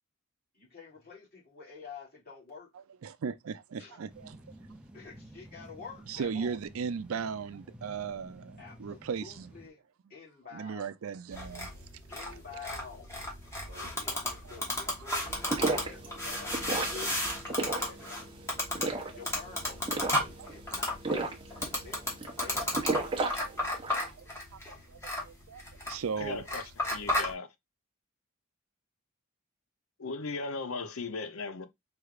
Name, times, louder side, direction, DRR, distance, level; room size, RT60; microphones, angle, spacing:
voice 1, 0.5-2.7 3.8-4.0 4.9-6.6 8.6-9.8 10.1-10.9 12.1-13.1 13.6-17.2 17.4-18.3 19.0-23.2, left 5 dB, 45° left, 2.6 m, -49 dB
voice 2, 3.0-4.4 6.1-9.5 10.5-11.7 13.8-14.2 14.5-14.6 17.2-17.3 20.4-20.5 23.5-23.6 23.9-26.4 26.8-27.0, right 6 dB, 75° right, 0.4 m, -38 dB
sound 1, 4.1-9.7, equal, 5° right, 0.5 m, -52 dB
sound 2, 11.3-27.3, left 1 dB, 15° left, 1.3 m, -34 dB
sound 3, 15.3-24.1, right 3 dB, 25° right, 0.8 m, -34 dB
voice 3, 26.2-27.5 30.0-31.7, left 3 dB, 75° left, 0.7 m, -37 dB
4.6 x 3.3 x 2.4 m
head